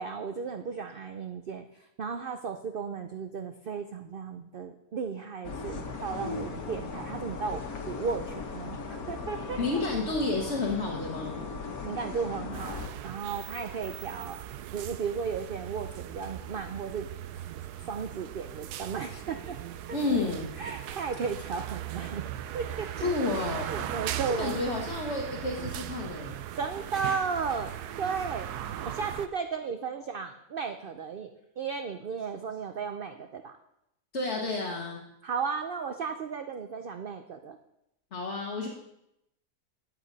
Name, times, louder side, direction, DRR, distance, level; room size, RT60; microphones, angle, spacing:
voice 1, 0.0-1.6 2.0-7.6 7.9-9.6 11.8-17.1 17.8-19.6 19.9-20.0 20.6-22.3 22.5-23.1 23.6-24.9 26.6-27.7 28.0-33.5 35.2-37.6, right 5 dB, 60° right, 7 dB, 0.5 m, -35 dB
sound 1, 5.4-12.9, left 4 dB, 70° left, 1.7 m, -38 dB
voice 2, 9.6-11.5 19.9-20.5 23.0-23.9 24.4-26.4 34.1-35.0 38.1-38.7, left 3 dB, 45° left, -2 dB, 1.6 m, -31 dB
sound 2, 12.5-29.3, right 11 dB, 85° right, 1.2 m, -38 dB
13.5 x 8.4 x 4.0 m, 0.82 s
omnidirectional pair, 1.6 m